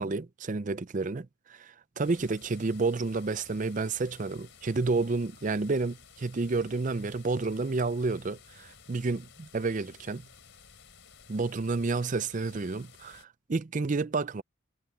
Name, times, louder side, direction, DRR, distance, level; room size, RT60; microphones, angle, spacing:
voice 1, 0.0-10.3 11.3-14.4, right 3 dB, 35° right, 0.5 m, -30 dB
sound 1, 2.0-13.3, left 6 dB, 60° left, 5.4 m, -55 dB
head